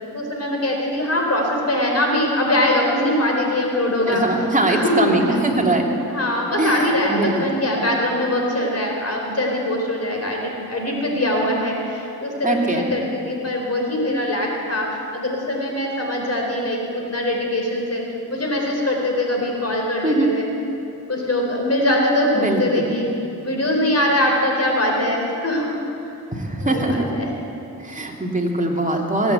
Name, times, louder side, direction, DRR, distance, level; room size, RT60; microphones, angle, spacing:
voice 1, 0.1-4.4 4.6-5.4 6.1-14.9 15.1-18.0 18.3-20.5 21.1-23.1 23.4-25.8 26.6-27.3, left 1 dB, 40° left, 0 dB, 4.4 m, -22 dB
voice 2, 4.1-5.9 6.6-7.5 12.4-12.9 20.0-20.3 22.3-22.9 26.3-27.0 27.8-29.3, right 2 dB, 20° right, 0 dB, 2.8 m, -21 dB
18.0 x 8.9 x 8.3 m, 2.7 s
supercardioid pair, 50°, 40 cm